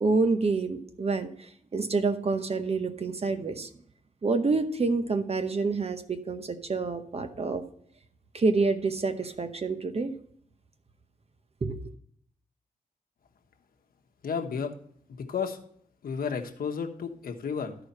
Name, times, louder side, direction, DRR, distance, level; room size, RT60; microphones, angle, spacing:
voice 1, 0.0-3.7 4.2-7.6 8.3-10.1 11.6-11.9, right 3 dB, 40° right, 8 dB, 0.9 m, -28 dB
voice 2, 14.2-14.7 15.2-15.6 16.0-17.7, left 6 dB, 75° left, 3 dB, 1.2 m, -32 dB
13.0 x 4.9 x 4.2 m, 0.64 s
wide cardioid pair, 95°, 15 cm